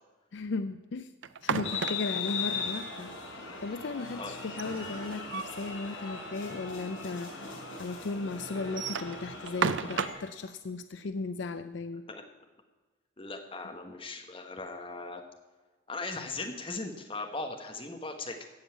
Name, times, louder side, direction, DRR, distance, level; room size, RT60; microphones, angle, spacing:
voice 1, 0.3-1.1 1.4-3.1 3.6-7.5 7.8-12.0, left 3 dB, 65° left, 10 dB, 0.4 m, -36 dB
sound 1, 1.2-2.3 4.4-5.7 6.0-6.1 6.4-6.5 7.3-7.4 8.6-10.3, right 6 dB, 70° right, 0.5 m, -33 dB
sound 2, 1.6-10.1, left 5 dB, 90° left, 4.9 m, -39 dB
voice 2, 13.2-15.2 15.9-18.4, left 3 dB, 25° left, 4 dB, 1.3 m, -38 dB
15.0 x 5.5 x 8.6 m, 1.3 s
head